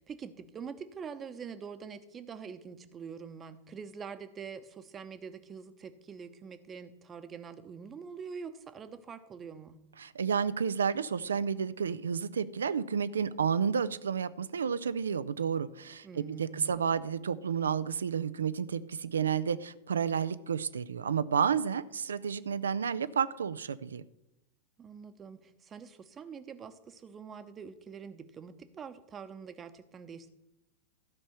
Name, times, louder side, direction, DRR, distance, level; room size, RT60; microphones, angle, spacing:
voice 1, 0.0-9.8 16.0-16.9 24.8-30.3, right 6 dB, 25° right, 10 dB, 0.9 m, -45 dB
voice 2, 10.0-24.0, right 7 dB, 70° right, 15 dB, 0.5 m, -31 dB
13.0 x 5.4 x 7.2 m, 0.91 s
figure-of-eight pair, 90°, 0 cm